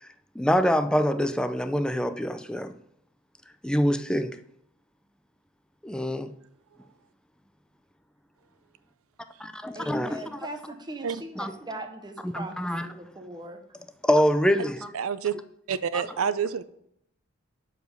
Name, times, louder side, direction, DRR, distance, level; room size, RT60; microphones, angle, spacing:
voice 1, 0.4-2.7 3.6-4.4 5.8-6.3 9.4-10.2 11.4-11.5 12.2-12.9 14.0-15.0 15.9-16.1, equal, 5° left, 0.4 m, -25 dB
voice 2, 9.7-13.9, right 1 dB, 20° right, 0.8 m, -40 dB
voice 3, 14.9-15.3 15.7-16.6, right 7 dB, 80° right, 0.5 m, -27 dB
7.1 x 5.0 x 6.4 m
head